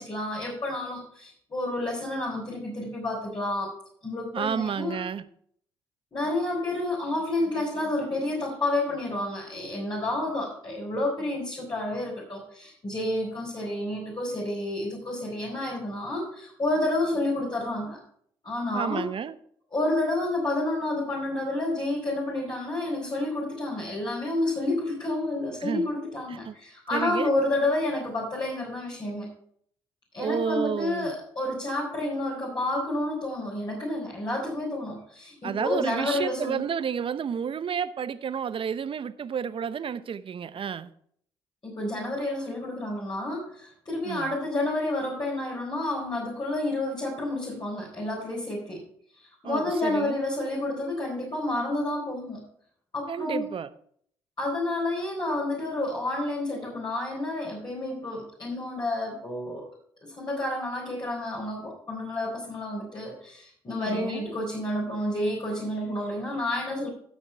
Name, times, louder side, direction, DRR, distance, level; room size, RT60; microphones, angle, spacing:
voice 1, 0.0-3.7 4.0-5.0 6.1-18.0 18.4-19.1 19.7-29.3 30.1-36.6 41.6-48.8 49.2-52.4 52.9-53.5 54.4-59.7 60.0-66.9, left 1 dB, 35° left, 4.2 m, -30 dB
voice 2, 4.3-5.2 18.7-19.4 25.6-25.9 26.3-26.5 26.9-27.3 30.2-31.1 35.4-40.9 44.0-44.4 49.4-50.2 53.1-53.7 63.8-64.3, right 7 dB, 50° right, 0.7 m, -31 dB
13.0 x 6.4 x 4.5 m
hypercardioid pair, 50°, 12 cm